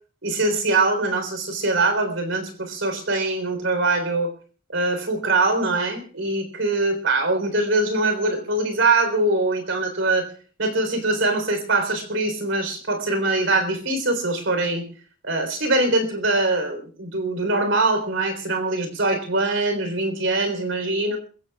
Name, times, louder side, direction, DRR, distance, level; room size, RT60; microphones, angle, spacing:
voice 1, 0.2-4.3 4.7-10.3 10.6-14.8 15.2-21.2, right 2 dB, 70° right, 7 dB, 3.9 m, -23 dB
28.5 x 15.0 x 2.4 m, 0.39 s
head